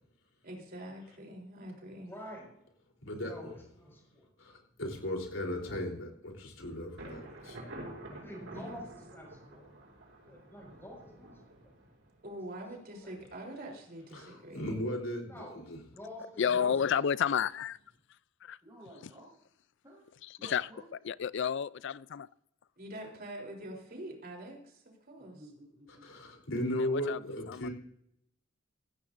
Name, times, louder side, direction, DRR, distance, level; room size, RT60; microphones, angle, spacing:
voice 1, 0.4-2.2 8.5-8.8 12.2-14.9 22.8-25.4, right 1 dB, 50° right, 3.6 m, -45 dB
voice 2, 1.9-2.5 3.2-4.3 5.6-5.8 8.1-9.7 10.3-11.7 12.5-12.6 12.9-13.2 15.2-15.6 15.8-17.1, equal, 15° left, 5.3 m, -48 dB
voice 3, 3.0-3.4 4.4-7.6 14.1-15.3 15.7-15.8 26.0-27.7, left 1 dB, 85° left, 3.5 m, -36 dB
Thunder, 7.0-12.6, right 1 dB, 90° right, 5.7 m, -48 dB
voice 4, 16.4-17.8 18.4-18.6 20.4-20.7 21.1-22.3 26.8-27.2 27.5-27.7, left 7 dB, 65° left, 0.4 m, -30 dB
voice 5, 18.6-19.3 19.8-20.1 20.4-20.9 25.2-26.4, right 1 dB, 20° right, 4.1 m, -54 dB
16.5 x 15.5 x 2.6 m
head